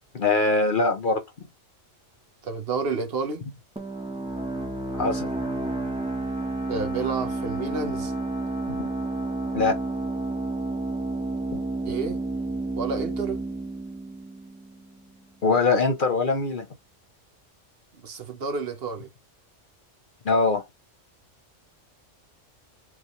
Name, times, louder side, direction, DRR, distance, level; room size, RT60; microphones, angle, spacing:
voice 1, 0.1-1.2 5.0-5.3 8.7-8.8 9.5-9.8 11.5-11.6 15.4-16.7 20.2-20.6, left 3 dB, 50° left, 0.9 m, -22 dB
voice 2, 2.4-3.4 6.7-8.2 11.9-12.2 12.8-13.4 17.9-19.1, right 4 dB, 55° right, 1.1 m, -30 dB
sound 1, 3.8-15.1, right 2 dB, 5° right, 1.2 m, -30 dB
4.8 x 3.3 x 3.0 m
omnidirectional pair, 1.3 m